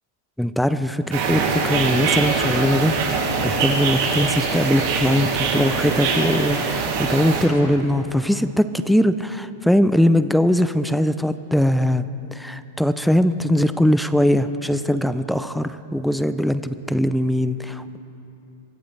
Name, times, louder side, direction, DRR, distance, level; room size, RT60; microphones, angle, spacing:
voice 1, 0.4-12.0 12.3-18.0, equal, ahead, 12 dB, 0.4 m, -21 dB
sound 1, 1.1-7.4, right 4 dB, 60° right, 2.6 m, -23 dB
24.0 x 14.5 x 3.3 m, 2.9 s
hypercardioid pair, 130°, 0 cm